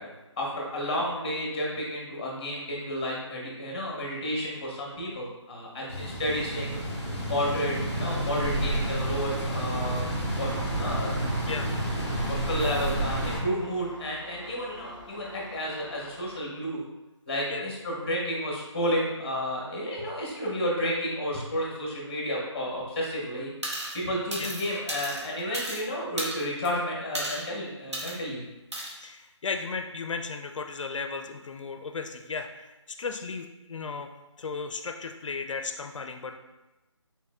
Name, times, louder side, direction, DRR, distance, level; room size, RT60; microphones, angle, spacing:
voice 1, 0.0-6.8 7.2-10.0 10.4-11.2 12.3-16.8 17.3-23.5 23.9-28.5, equal, 20° left, -3 dB, 0.8 m, -31 dB
sound 1, 5.9-13.4, right 1 dB, 10° right, 0.6 m, -30 dB
Engine, 10.3-16.3, right 1 dB, 40° right, 0.8 m, -45 dB
sound 2, 23.6-24.0 24.3-25.8 26.2-26.7 27.1-27.5 27.9-28.2 28.7-28.9, right 1 dB, 65° right, 1.1 m, -34 dB
voice 2, 29.0-34.1 34.4-36.4, left 4 dB, 80° left, 6 dB, 0.4 m, -35 dB
4.2 x 3.8 x 2.4 m, 1.0 s
figure-of-eight pair, 170°, 16 cm